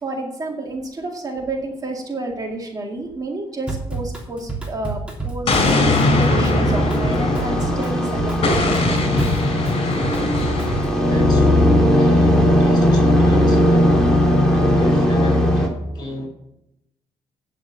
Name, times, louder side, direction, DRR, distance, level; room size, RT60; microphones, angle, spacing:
voice 1, 0.0-9.3, right 2 dB, 35° right, 1 dB, 2.2 m, -30 dB
Drum kit / Drum, 3.7-11.0, right 3 dB, 10° right, 3.1 m, -29 dB
Explosion, 5.5-7.9 8.4-11.0, left 2 dB, 60° left, 4.0 m, -21 dB
sound 1, 6.3-15.7, left 1 dB, 5° left, 3.2 m, -18 dB
voice 2, 11.1-14.0 14.5-16.3, left 2 dB, 40° left, -1 dB, 5.1 m, -33 dB
9.2 x 7.2 x 7.4 m, 0.87 s
cardioid pair, 105°, 11 cm